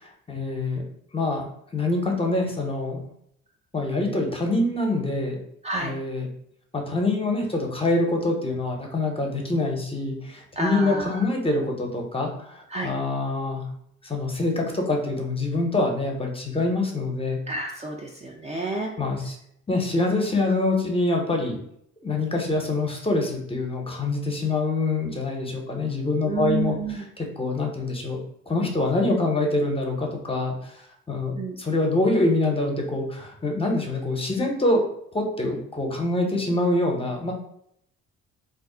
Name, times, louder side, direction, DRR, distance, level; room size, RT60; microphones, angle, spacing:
voice 1, 0.3-0.8 1.1-1.4 1.7-3.0 3.7-5.4 5.8-6.3 6.7-13.7 14.0-17.4 19.0-19.3 19.7-21.6 22.0-27.0 27.4-28.2 28.5-30.7 31.1-34.8 35.1-37.3, left 2 dB, 20° left, 1 dB, 0.6 m, -25 dB
voice 2, 10.6-11.2 12.7-12.9 17.5-18.9 26.2-27.1 31.4-31.6, right 3 dB, 25° right, 0 dB, 0.4 m, -29 dB
2.4 x 2.0 x 3.6 m, 0.71 s
cardioid pair, 90°, 30 cm